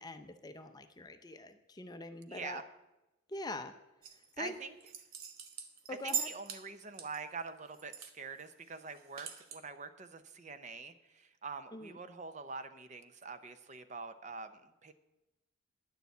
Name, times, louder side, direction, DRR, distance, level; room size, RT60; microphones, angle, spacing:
voice 1, 0.0-2.6 3.3-3.7 4.4-4.5 5.9-6.3 11.7-12.0, left 2 dB, 20° left, 8 dB, 0.6 m, -43 dB
voice 2, 2.3-2.6 4.4-4.7 5.9-14.9, right 4 dB, 35° right, 10 dB, 0.6 m, -45 dB
sound 1, 4.0-4.3 4.8-6.6 6.9-8.1 8.4-8.5 8.8-9.6, right 8 dB, 85° right, 1.2 m, -40 dB
10.5 x 6.8 x 8.1 m, 0.99 s
head